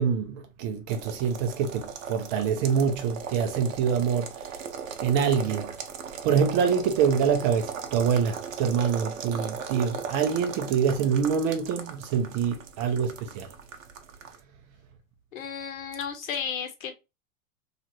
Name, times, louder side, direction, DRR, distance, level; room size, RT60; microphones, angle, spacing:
voice 1, 0.0-4.3 5.0-5.7 6.2-13.5, right 7 dB, 30° right, 0.5 m, -25 dB
sound 1, 0.9-14.4, right 6 dB, 65° right, 0.8 m, -38 dB
voice 2, 15.3-16.9, left 7 dB, 70° left, 1.0 m, -33 dB
2.9 x 2.4 x 2.8 m
hypercardioid pair, 115°, 42 cm